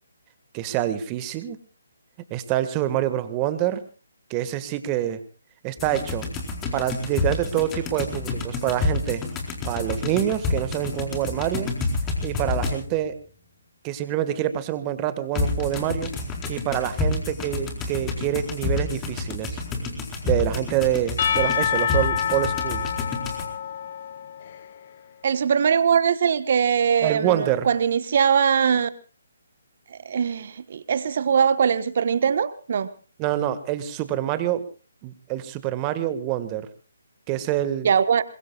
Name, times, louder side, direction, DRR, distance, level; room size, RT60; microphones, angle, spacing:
voice 1, 0.5-1.6 2.3-3.8 4.3-5.2 5.6-6.3 6.7-9.3 9.7-11.7 12.2-13.2 13.8-16.1 16.5-19.6 20.2-22.9 27.0-27.7 33.2-34.6 35.0-36.7 37.3-37.9, right 12 dB, 25° right, 1.7 m, -26 dB
sound 1, 5.8-13.0 15.3-23.4, left 3 dB, 15° left, 4.5 m, -29 dB
Percussion / Church bell, 21.2-24.8, left 8 dB, 45° left, 1.4 m, -27 dB
voice 2, 25.2-28.9 30.0-32.9 37.8-38.2, right 7 dB, 50° right, 1.2 m, -21 dB
26.0 x 22.5 x 2.4 m
figure-of-eight pair, 145°, 0 cm